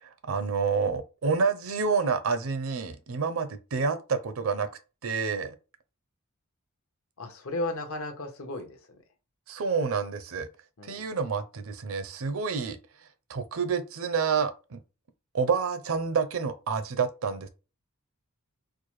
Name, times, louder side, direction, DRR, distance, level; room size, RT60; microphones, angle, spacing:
voice 1, 0.0-4.7 5.0-5.5 9.5-10.5 10.8-12.8 13.3-14.8 15.3-17.5, right 5 dB, 65° right, 0.5 m, -28 dB
voice 2, 7.2-8.8 10.8-11.1, left 2 dB, 65° left, 0.9 m, -34 dB
4.5 x 2.1 x 3.1 m
head